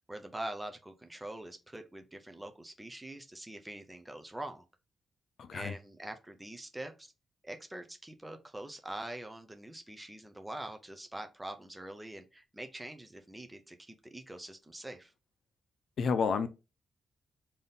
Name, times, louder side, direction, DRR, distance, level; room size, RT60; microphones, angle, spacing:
voice 1, 0.1-4.7 5.5-7.1 7.4-15.1, right 1 dB, 5° right, 0.4 m, -44 dB
voice 2, 5.4-5.7 16.0-16.5, left 5 dB, 55° left, 0.5 m, -30 dB
3.5 x 2.7 x 3.8 m
wide cardioid pair, 180°, 0 cm